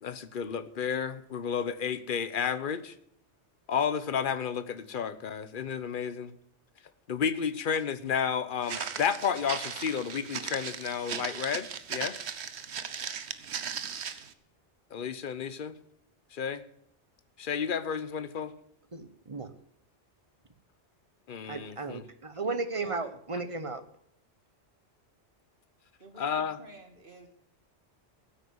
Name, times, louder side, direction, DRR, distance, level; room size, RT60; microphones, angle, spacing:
voice 1, 0.0-2.9 3.7-6.3 7.1-12.2 14.9-15.7 16.3-16.6 17.4-18.5 21.3-22.0 26.2-26.6, left 7 dB, 50° left, 13 dB, 1.1 m, -32 dB
Walk footsteps, 8.6-14.3, right 7 dB, 70° right, 1.2 m, -37 dB
voice 2, 18.9-19.5 21.5-23.8, right 3 dB, 30° right, 11 dB, 1.1 m, -35 dB
voice 3, 22.7-23.1 26.0-27.3, right 1 dB, 50° right, 5 dB, 2.6 m, -50 dB
15.0 x 8.7 x 7.7 m, 0.69 s
omnidirectional pair, 1.2 m